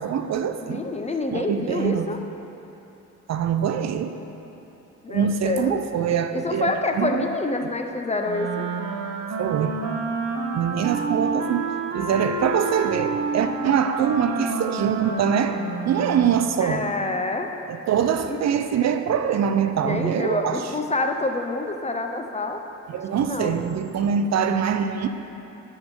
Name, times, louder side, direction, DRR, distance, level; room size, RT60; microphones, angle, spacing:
voice 1, 0.0-0.8 1.3-2.1 3.3-4.1 5.1-7.3 7.6-7.7 9.4-9.8 10.6-16.8 17.7-20.7 22.9-25.1, right 8 dB, 55° right, 8 dB, 0.4 m, -24 dB
voice 2, 0.6-2.2 5.0-5.8 6.3-8.7 16.6-17.5 18.2-18.4 19.8-22.6 23.2-23.6, left 2 dB, 20° left, 4 dB, 0.5 m, -27 dB
Wind instrument woodwind instrument, 8.2-16.5, right 4 dB, 70° right, 0.9 m, -29 dB
10.0 x 3.6 x 5.3 m, 2.9 s
cardioid pair, 90°, 33 cm